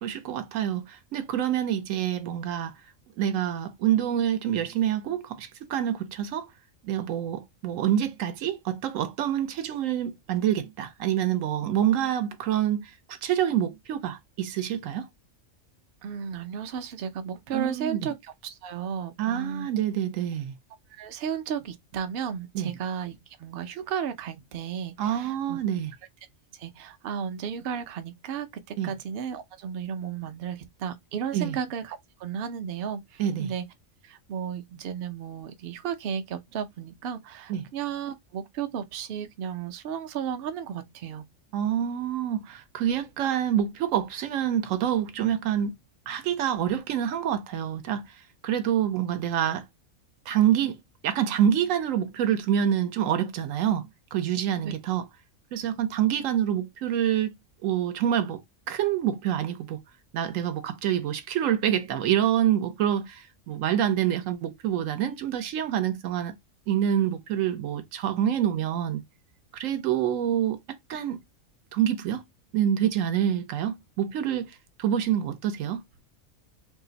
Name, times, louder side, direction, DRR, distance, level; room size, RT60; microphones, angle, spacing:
voice 1, 0.0-2.7 3.2-6.5 6.8-15.1 17.5-18.0 19.2-20.5 22.5-22.7 25.0-25.9 28.8-28.9 31.3-31.6 33.2-33.5 37.5-37.6 41.5-45.7 46.1-48.0 48.4-49.6 50.3-55.0 55.5-57.3 57.6-58.4 58.7-59.8 60.1-66.4 66.7-69.0 69.6-71.2 71.7-72.2 72.5-74.5 74.8-75.8, right 10 dB, 80° right, 1.0 m, -27 dB
voice 2, 16.0-19.7 20.9-25.6 26.5-33.6 34.0-41.3 54.6-54.7, right 7 dB, 60° right, 0.6 m, -34 dB
2.7 x 2.4 x 3.8 m
omnidirectional pair, 1.3 m